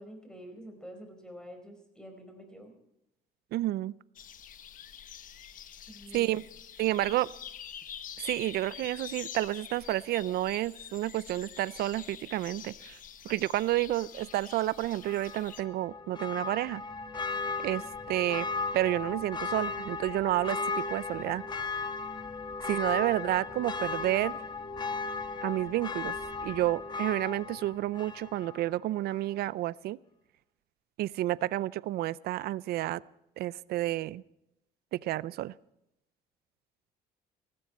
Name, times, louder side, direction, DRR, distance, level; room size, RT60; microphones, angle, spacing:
voice 1, 0.0-2.7 5.9-6.3, equal, 5° left, 4 dB, 4.8 m, -47 dB
voice 2, 3.5-3.9 6.1-6.4 6.8-7.3 8.2-13.0 13.2-16.8 17.6-18.5 18.7-21.4 22.6-24.4 25.4-26.1 26.4-30.0 31.0-33.0 33.4-34.2 34.9-35.5, right 15 dB, 70° right, 21 dB, 0.5 m, -30 dB
sound 1, 4.2-15.6, left 9 dB, 50° left, 1.1 m, -46 dB
Church bell, 15.0-28.7 29.1-29.2, left 4 dB, 25° left, 1.5 m, -36 dB
18.0 x 16.0 x 4.3 m, 0.84 s
cardioid pair, 110°, 17 cm